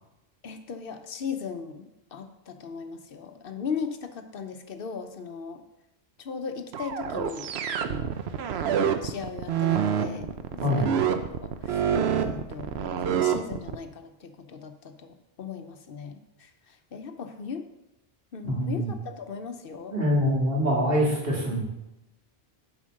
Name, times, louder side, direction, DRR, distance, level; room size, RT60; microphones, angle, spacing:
voice 1, 0.4-5.6 6.2-7.5 7.8-8.1 9.0-11.0 11.4-11.9 12.2-17.6 18.3-19.9, left 6 dB, 65° left, 7 dB, 0.9 m, -38 dB
sound 1, 6.7-13.7, right 8 dB, 90° right, 0.9 m, -26 dB
voice 2, 10.6-10.9 18.4-18.9 19.9-21.6, equal, 65° right, -5 dB, 2.6 m, -24 dB
7.3 x 5.2 x 6.4 m, 0.92 s
omnidirectional pair, 1.0 m